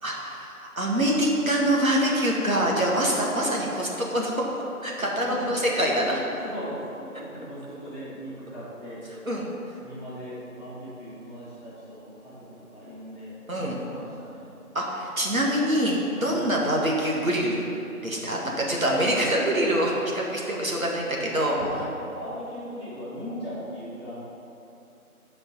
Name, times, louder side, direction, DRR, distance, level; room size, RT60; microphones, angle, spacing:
voice 1, 0.0-6.2 9.3-9.5 13.5-13.8 14.7-17.6 18.0-21.6, right 1 dB, 65° right, -3 dB, 1.8 m, -25 dB
voice 2, 5.0-5.9 6.4-9.1 9.8-14.6 16.2-16.4 21.6-24.2, equal, 20° left, -14 dB, 2.1 m, -38 dB
9.8 x 5.4 x 5.7 m, 2.8 s
figure-of-eight pair, 175°, 45 cm